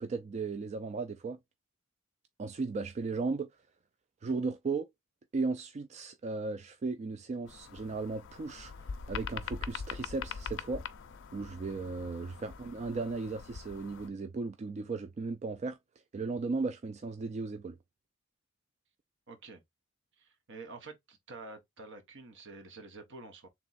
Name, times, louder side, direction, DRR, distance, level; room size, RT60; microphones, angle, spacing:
voice 1, 0.0-1.4 2.4-3.5 4.2-4.9 5.3-10.8 11.3-15.8 16.1-17.8, right 3 dB, 30° right, 0.3 m, -36 dB
sound 1, 7.5-14.1, left 6 dB, 60° left, 0.5 m, -43 dB
voice 2, 19.3-19.6 20.2-23.5, right 3 dB, 60° right, 1.1 m, -48 dB
3.5 x 2.9 x 4.0 m
head